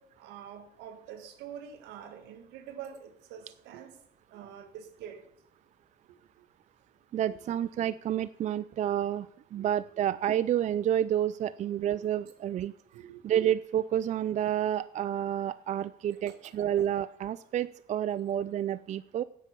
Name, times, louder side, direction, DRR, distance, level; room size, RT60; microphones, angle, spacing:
voice 1, 0.0-4.0 4.3-5.2 6.1-6.5 7.5-7.6 9.5-9.7 12.9-13.2 16.2-16.4, right 9 dB, 85° right, 1.7 m, -46 dB
voice 2, 7.1-12.7 13.2-19.2, right 11 dB, 45° right, 0.4 m, -29 dB
9.8 x 8.3 x 6.7 m
cardioid pair, 110°, 17 cm